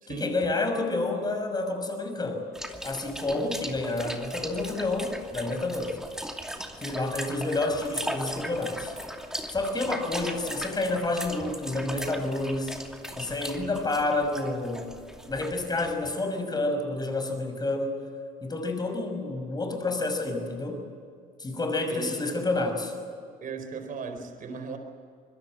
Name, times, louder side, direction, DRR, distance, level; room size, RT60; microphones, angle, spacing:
voice 1, 0.1-2.5 2.8-6.0 6.8-8.9 9.5-12.8 13.2-14.9 15.3-18.0 18.4-20.8 21.4-22.9, left 2 dB, 25° left, 5 dB, 5.7 m, -29 dB
sound 1, 2.5-16.1, equal, 5° right, 2.6 m, -38 dB
voice 2, 23.4-24.8, right 5 dB, 55° right, 6 dB, 4.2 m, -36 dB
25.5 x 21.0 x 7.7 m, 2.3 s
cardioid pair, 110°, 17 cm